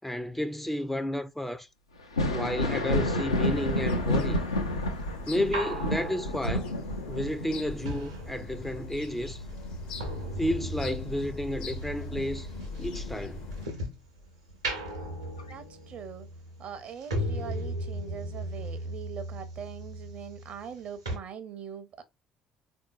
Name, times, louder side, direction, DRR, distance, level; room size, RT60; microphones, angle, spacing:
voice 1, 0.0-1.7 2.3-4.4 5.3-6.7 7.1-9.4 10.4-12.5 12.8-13.4, left 1 dB, 5° left, 0.3 m, -31 dB
Thunder, 2.0-11.3 11.7-12.9 14.5-14.6 15.4-15.5, left 1 dB, 90° left, 0.4 m, -31 dB
sound 1, 3.0-9.0 9.3-14.1 14.5-20.8 21.1-21.2, right 1 dB, 90° right, 0.7 m, -38 dB
sound 2, 3.3-13.7, left 3 dB, 65° left, 0.8 m, -41 dB
voice 2, 15.5-16.3 16.6-22.0, right 7 dB, 50° right, 0.5 m, -42 dB
3.6 x 2.6 x 2.3 m
figure-of-eight pair, 50°, 3 cm